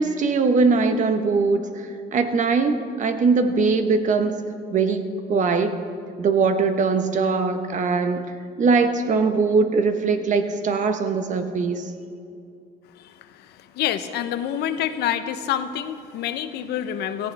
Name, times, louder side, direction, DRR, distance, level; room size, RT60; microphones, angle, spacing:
voice 1, 0.0-4.4 4.7-5.8 6.2-8.2 8.6-11.8, right 4 dB, 45° right, 7 dB, 1.2 m, -21 dB
voice 2, 12.9-17.3, left 10 dB, 80° left, 10 dB, 0.8 m, -27 dB
17.5 x 15.0 x 3.5 m, 2.4 s
cardioid pair, 110°, 17 cm